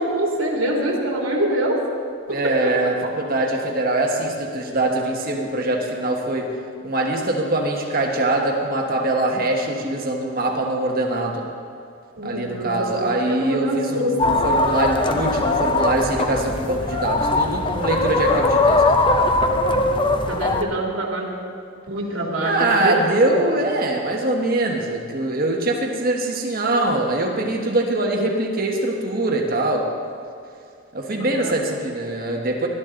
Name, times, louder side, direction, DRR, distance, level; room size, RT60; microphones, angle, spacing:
voice 1, 0.0-1.8 2.3-2.7 12.2-14.4 19.7-19.8 20.3-21.4 21.9-23.2 31.1-31.5, right 1 dB, 70° right, -1 dB, 2.7 m, -25 dB
voice 2, 2.3-6.6 6.8-11.4 12.2-18.8 22.4-29.9 30.9-32.7, right 2 dB, 45° right, 1 dB, 1.4 m, -23 dB
sound 1, 14.2-20.6, left 2 dB, 25° left, 0.7 m, -20 dB
19.0 x 12.0 x 3.9 m, 2.4 s
head